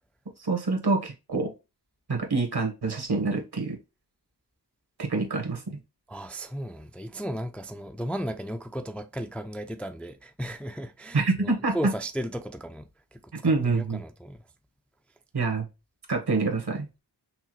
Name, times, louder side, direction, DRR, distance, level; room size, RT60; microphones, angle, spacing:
voice 1, 0.4-1.5 2.1-3.8 5.0-5.8 11.1-11.9 13.4-14.0 15.3-15.6 16.1-16.9, right 3 dB, 70° right, 1.3 m, -26 dB
voice 2, 6.1-13.3 13.7-14.4, equal, 5° left, 0.3 m, -35 dB
5.8 x 2.1 x 3.0 m
wide cardioid pair, 60°, 41 cm